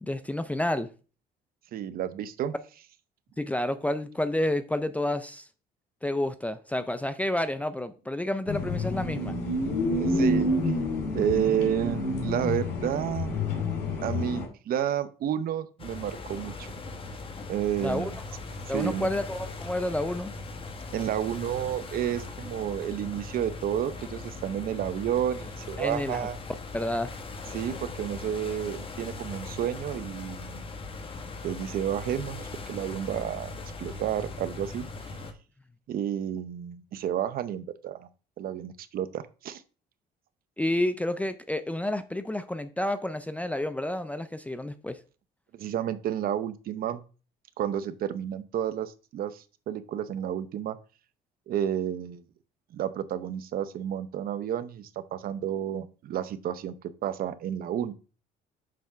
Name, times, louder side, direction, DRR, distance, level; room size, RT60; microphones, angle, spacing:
voice 1, 0.0-0.9 3.4-5.5 6.0-9.4 17.8-18.1 18.7-20.3 25.8-26.3 26.7-27.1 40.6-45.0, left 1 dB, 10° left, 0.5 m, -30 dB
voice 2, 1.7-2.5 10.0-10.5 11.1-13.4 14.0-16.7 17.5-18.2 18.7-19.1 20.9-26.4 27.5-30.6 31.4-33.5 33.8-34.9 35.9-38.1 38.4-39.6 45.5-47.0 47.6-50.8 51.5-52.2 52.7-56.7 57.0-57.9, right 10 dB, 60° right, 0.7 m, -31 dB
sound 1, 8.5-14.5, left 1 dB, 85° left, 2.4 m, -28 dB
sound 2, 15.8-35.3, left 3 dB, 30° left, 1.2 m, -40 dB
7.5 x 3.5 x 5.6 m
cardioid pair, 110°, 17 cm